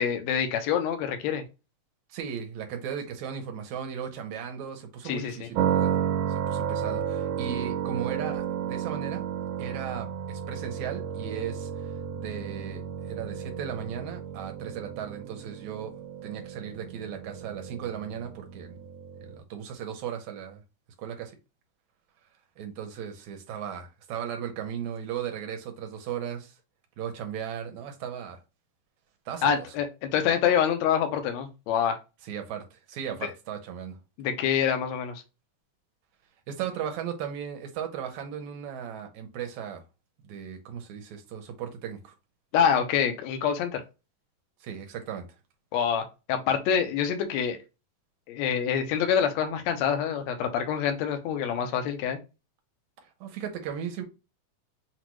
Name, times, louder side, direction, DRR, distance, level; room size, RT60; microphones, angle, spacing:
voice 1, 0.0-1.4 5.1-5.5 29.4-32.0 34.2-35.2 42.5-43.8 45.7-47.6 48.3-52.2, left 8 dB, 70° left, 1.9 m, -26 dB
voice 2, 2.1-5.9 6.3-9.2 9.6-15.9 16.2-18.8 19.2-20.6 21.0-21.3 22.6-26.5 27.0-28.4 29.3-29.5 32.2-34.0 36.5-39.8 40.2-42.1 44.6-45.3 53.2-54.0, right 8 dB, 70° right, 2.1 m, -36 dB
sound 1, 5.5-19.4, right 9 dB, 90° right, 2.1 m, -32 dB
6.1 x 2.5 x 3.0 m
omnidirectional pair, 3.6 m